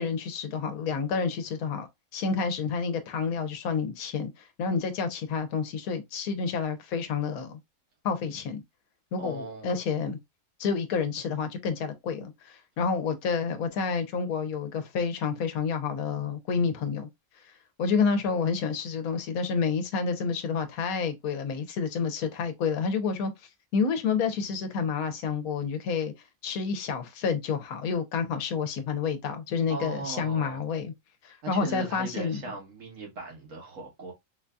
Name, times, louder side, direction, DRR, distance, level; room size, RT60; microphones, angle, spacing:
voice 1, 0.0-1.9 2.1-7.6 8.0-8.6 9.1-10.2 10.6-17.1 17.4-17.5 17.8-26.1 26.4-30.9 31.2-32.4, left 5 dB, 80° left, 1.2 m, -29 dB
voice 2, 9.2-9.7 29.7-30.7 31.4-34.1, right 3 dB, 60° right, 1.5 m, -38 dB
4.7 x 2.6 x 2.2 m
omnidirectional pair, 1.5 m